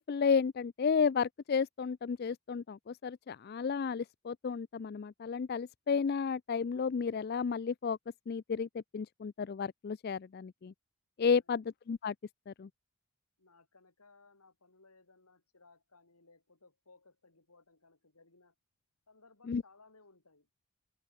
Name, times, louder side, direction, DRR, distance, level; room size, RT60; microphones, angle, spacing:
voice 1, 0.0-8.0 8.3-10.7 11.2-12.1 12.5-12.7 19.5-19.6, left 6 dB, 45° left, 0.3 m, -32 dB
voice 2, 13.4-18.5 19.1-20.5, left 3 dB, 90° left, 4.1 m, -63 dB
head